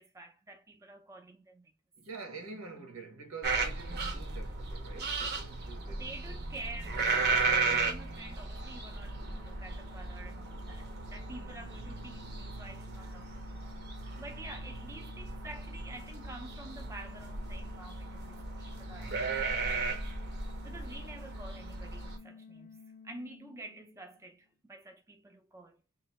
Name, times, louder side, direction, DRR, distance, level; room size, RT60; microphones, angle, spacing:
voice 1, 0.0-1.7 5.9-13.5 14.2-19.2 20.4-25.8, right 2 dB, 15° right, 0.5 m, -49 dB
voice 2, 2.0-6.4 11.3-11.8 18.7-19.8, right 4 dB, 85° right, 1.3 m, -48 dB
sound 1, 3.4-22.2, right 4 dB, 50° right, 0.7 m, -35 dB
sound 2, 6.8-24.3, left 5 dB, 45° left, 0.4 m, -54 dB
3.0 x 2.6 x 4.1 m
head